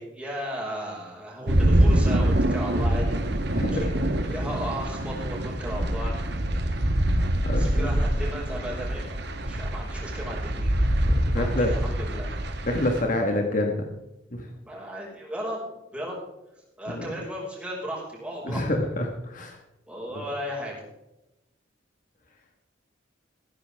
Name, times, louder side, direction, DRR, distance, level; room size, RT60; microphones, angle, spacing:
voice 1, 0.0-3.2 3.7-3.9 4.3-6.2 6.5-6.8 7.5-10.7 11.3-12.3 13.0-13.2 14.6-16.2 16.8-18.7 19.9-20.7, equal, 5° right, -4 dB, 5.7 m, -35 dB
sound 1, 1.5-13.0, right 1 dB, 60° right, 1.6 m, -25 dB
voice 2, 3.5-3.8 7.4-7.9 11.1-11.7 12.6-13.8 14.3-14.5 16.9-17.0 18.4-19.6, left 1 dB, 45° left, 2 dB, 1.7 m, -27 dB
15.5 x 14.5 x 3.6 m, 0.91 s
head